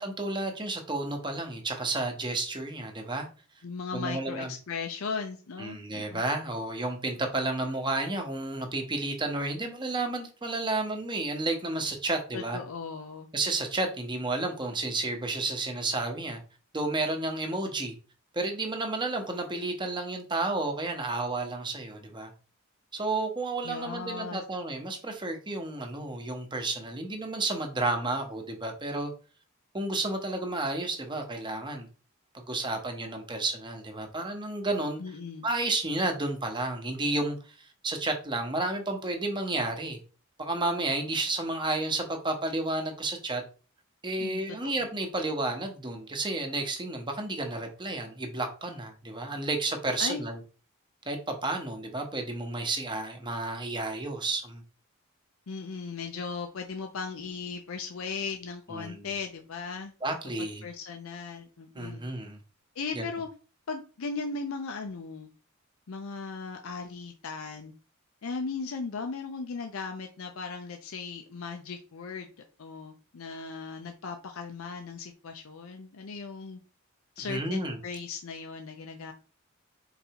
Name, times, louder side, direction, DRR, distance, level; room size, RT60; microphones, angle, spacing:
voice 1, 0.0-3.3 3.9-4.5 5.6-12.6 13.3-16.4 16.7-18.0 18.3-22.3 22.9-29.1 29.7-31.9 32.3-35.0 35.4-40.0 40.4-43.4 44.0-50.4 51.1-54.6 58.7-59.1 60.0-60.7 61.7-62.4 62.9-63.0 77.3-77.8, right 2 dB, 25° right, 0.9 m, -31 dB
voice 2, 3.6-6.2 12.3-13.3 23.6-24.4 35.0-35.5 44.2-44.9 50.0-50.2 55.5-59.9 60.6-62.0 62.8-63.3 63.7-65.3 65.9-67.7 68.2-72.3 72.6-76.6 77.2-79.1, left 4 dB, 80° left, 0.5 m, -37 dB
4.5 x 3.9 x 2.9 m
head